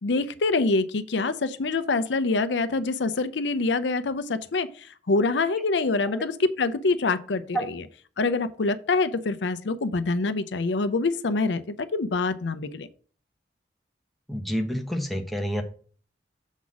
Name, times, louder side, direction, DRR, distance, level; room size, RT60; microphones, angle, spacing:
voice 1, 0.0-7.6 8.2-12.9, left 3 dB, 80° left, 13 dB, 0.6 m, -25 dB
voice 2, 14.3-15.6, equal, ahead, 3 dB, 0.9 m, -28 dB
7.2 x 4.0 x 6.1 m, 0.42 s
head